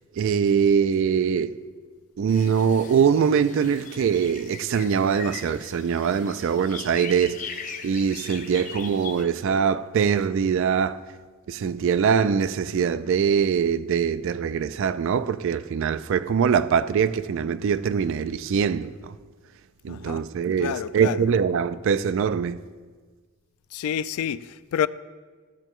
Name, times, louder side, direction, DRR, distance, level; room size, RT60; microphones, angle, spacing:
voice 1, 0.1-1.6 2.2-11.0 11.5-19.1 19.8-22.6, right 7 dB, 60° right, 0.3 m, -23 dB
sound 1, 2.3-9.3, left 6 dB, 35° left, 0.6 m, -40 dB
voice 2, 19.9-20.2 20.6-21.2 23.7-24.9, left 9 dB, 80° left, 0.3 m, -28 dB
15.0 x 6.5 x 3.1 m
head